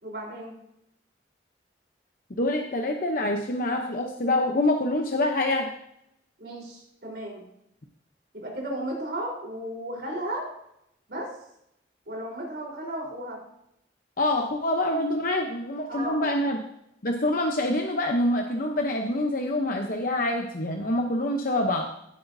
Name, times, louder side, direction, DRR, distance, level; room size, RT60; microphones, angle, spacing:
voice 1, 0.0-0.5 6.4-7.5 8.3-10.5 11.1-11.3 12.1-13.4 15.9-16.4, right 1 dB, 60° right, -2 dB, 4.0 m, -34 dB
voice 2, 2.3-5.7 14.2-16.6 17.0-21.9, left 1 dB, 50° left, 2 dB, 0.8 m, -26 dB
15.5 x 8.0 x 2.7 m, 0.79 s
head